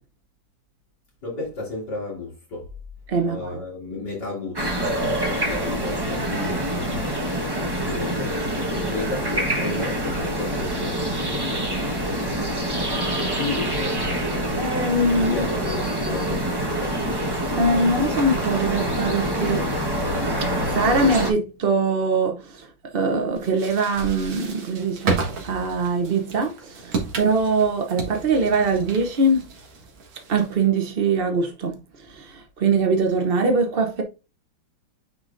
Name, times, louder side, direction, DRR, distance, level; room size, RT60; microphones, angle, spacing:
voice 1, 1.2-2.7 3.2-7.2 7.9-11.2 13.2-14.0 15.1-17.5, left 2 dB, 55° left, 3.2 m, -33 dB
voice 2, 3.1-3.6 14.5-15.4 17.5-19.7 20.7-29.4 30.3-34.0, right 3 dB, 65° right, 0.5 m, -22 dB
sound 1, 4.5-21.3, equal, 15° right, 0.9 m, -26 dB
sound 2, 23.4-30.7, right 4 dB, 85° right, 2.3 m, -32 dB
9.5 x 3.9 x 2.5 m
omnidirectional pair, 2.1 m